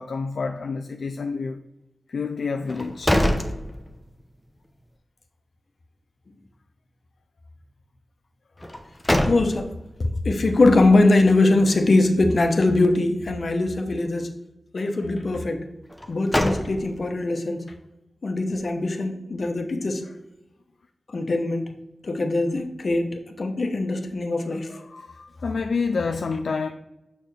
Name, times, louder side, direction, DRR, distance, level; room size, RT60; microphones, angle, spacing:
voice 1, 0.0-1.6 2.1-3.2 24.5-26.7, left 4 dB, 80° left, 0.3 m, -29 dB
sound 1, 2.7-4.3 4.7-4.8 8.6-9.9 15.9-17.2, left 1 dB, 15° left, 0.8 m, -25 dB
voice 2, 9.3-9.7 10.0-14.3 14.7-15.6 16.1-17.6 18.2-20.0 21.1-21.7 22.0-24.7, left 2 dB, 60° left, 1.0 m, -21 dB
6.6 x 5.6 x 3.3 m
cardioid pair, 45°, 0 cm